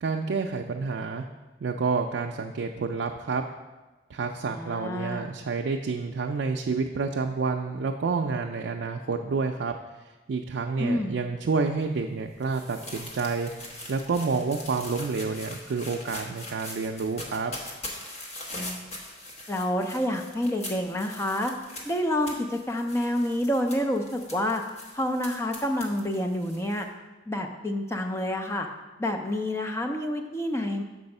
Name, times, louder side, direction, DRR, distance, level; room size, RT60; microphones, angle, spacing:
voice 1, 0.0-1.2 1.6-3.4 4.1-9.7 10.3-13.5 13.9-17.5, right 4 dB, 80° right, 2 dB, 0.4 m, -29 dB
voice 2, 4.5-5.2 10.8-11.2 18.5-18.8 19.5-21.5 21.8-24.6 24.9-26.9 27.3-28.7 29.0-30.8, left 1 dB, 15° left, 4 dB, 0.5 m, -28 dB
sound 1, 11.8-26.8, left 1 dB, 40° left, 1.1 m, -42 dB
6.8 x 4.8 x 5.3 m, 1.2 s
head